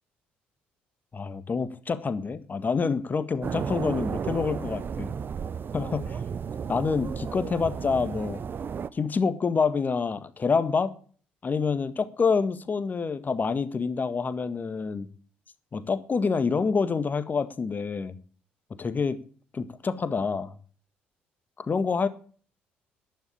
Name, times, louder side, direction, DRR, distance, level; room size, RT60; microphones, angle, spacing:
voice 1, 1.1-5.1 5.7-6.2 6.7-8.4 8.9-10.9 11.4-15.1 15.7-18.1 18.8-19.2 19.5-20.5 21.6-22.1, left 5 dB, 35° left, 1.7 m, -27 dB
sound 1, 3.4-8.9, right 7 dB, 45° right, 0.8 m, -33 dB
11.5 x 10.5 x 8.6 m
hypercardioid pair, 50°, 5 cm